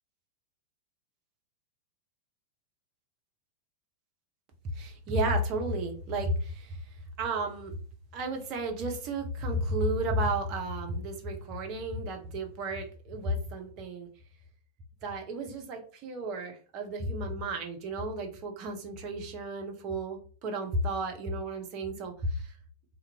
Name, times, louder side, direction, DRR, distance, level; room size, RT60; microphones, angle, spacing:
voice 1, 4.7-6.8 7.2-7.7 8.1-14.1 15.0-22.5, right 1 dB, 40° right, 3 dB, 0.6 m, -33 dB
2.5 x 2.1 x 2.7 m, 0.40 s
figure-of-eight pair, 90°, 0 cm